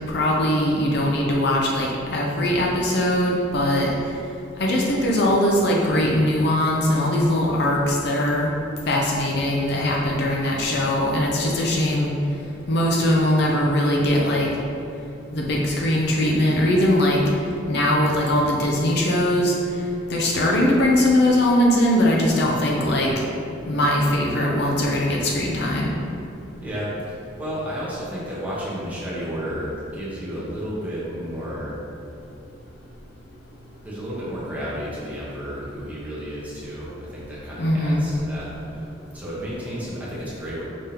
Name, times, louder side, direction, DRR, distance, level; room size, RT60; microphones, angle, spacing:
voice 1, 0.1-3.9 4.6-8.5 8.9-12.1 12.7-14.5 15.3-17.2 17.7-19.5 20.1-23.1 23.7-25.9 37.6-38.0, left 1 dB, 55° left, -2 dB, 0.5 m, -20 dB
voice 2, 26.6-31.8 33.8-40.6, equal, 10° right, -9 dB, 1.1 m, -32 dB
5.1 x 3.5 x 2.9 m, 2.7 s
head